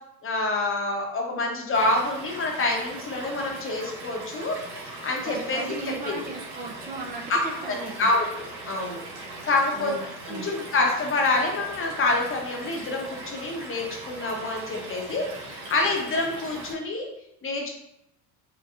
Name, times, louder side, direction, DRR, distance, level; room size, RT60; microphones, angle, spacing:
voice 1, 0.2-6.2 7.3-7.4 7.7-9.0 9.4-10.0 10.3-17.1 17.4-17.7, left 2 dB, 25° left, 1 dB, 0.8 m, -27 dB
Stream / Liquid, 1.7-16.7, right 2 dB, 60° right, 1.3 m, -40 dB
voice 2, 5.2-8.1 9.7-10.0 10.3-10.5, right 3 dB, 20° right, 2 dB, 0.4 m, -36 dB
4.5 x 2.2 x 2.4 m, 0.82 s
supercardioid pair, 90°, 47 cm